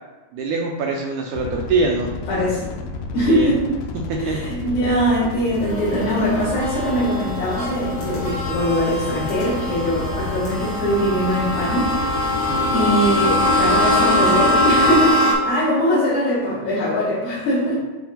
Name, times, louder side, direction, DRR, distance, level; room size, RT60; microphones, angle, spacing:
voice 1, 0.3-2.1 3.3-3.5 4.1-4.4 12.5-12.7, right 3 dB, 80° right, 1 dB, 1.8 m, -23 dB
sound 1, 1.3-15.1, left 3 dB, 80° left, 1.9 m, -32 dB
voice 2, 2.3-2.7 3.1-3.7 4.2-12.2 12.7-17.8, equal, 60° left, -10 dB, 3.3 m, -22 dB
sound 2, 5.6-15.3, left 1 dB, 40° left, 2.1 m, -22 dB
8.5 x 3.4 x 3.9 m, 1.2 s
omnidirectional pair, 4.0 m